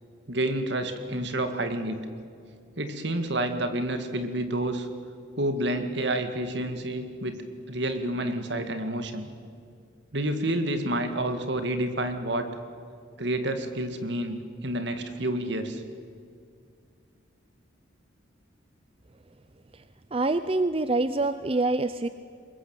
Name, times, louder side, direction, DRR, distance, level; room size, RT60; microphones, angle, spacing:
voice 1, 0.3-2.0 2.8-4.9 5.4-7.4 7.7-9.3 10.1-12.5 13.2-15.8, right 1 dB, 65° right, 8 dB, 2.2 m, -29 dB
voice 2, 20.1-22.1, right 2 dB, 30° right, 12 dB, 0.6 m, -25 dB
23.5 x 21.5 x 8.9 m, 2.3 s
head